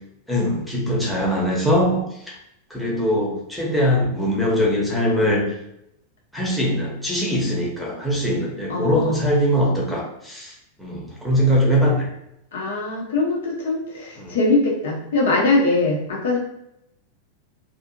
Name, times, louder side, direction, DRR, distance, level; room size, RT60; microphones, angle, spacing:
voice 1, 0.3-2.4 2.7-5.4 6.3-10.5 10.8-12.1 14.2-14.4, equal, ahead, -4 dB, 1.0 m, -21 dB
voice 2, 8.7-9.2 12.5-16.4, left 2 dB, 60° left, -2 dB, 0.9 m, -22 dB
2.6 x 2.5 x 2.6 m, 0.80 s
figure-of-eight pair, 90°, 0 cm